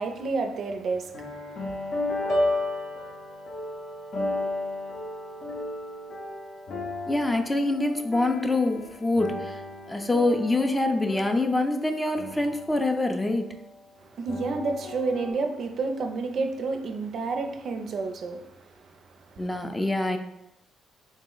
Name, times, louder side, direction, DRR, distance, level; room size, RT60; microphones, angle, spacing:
voice 1, 0.0-1.9 14.0-19.6, right 3 dB, 60° right, 5 dB, 0.4 m, -31 dB
sound 1, 0.9-13.8 14.3-15.3, left 2 dB, 60° left, 0.6 m, -34 dB
voice 2, 7.1-9.6 9.9-13.5 19.4-20.2, left 2 dB, 15° left, 5 dB, 0.4 m, -25 dB
3.7 x 2.0 x 3.8 m, 0.83 s
cardioid pair, 90°, 0 cm